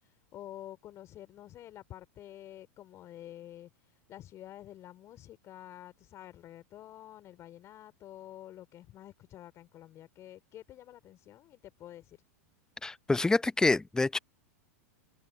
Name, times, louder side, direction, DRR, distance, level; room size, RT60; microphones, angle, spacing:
voice 1, 0.3-3.7 4.1-12.2, left 13 dB, 40° left, 3.5 m, -49 dB
voice 2, 12.8-14.2, left 3 dB, 10° left, 0.7 m, -27 dB
hypercardioid pair, 100°, 8 cm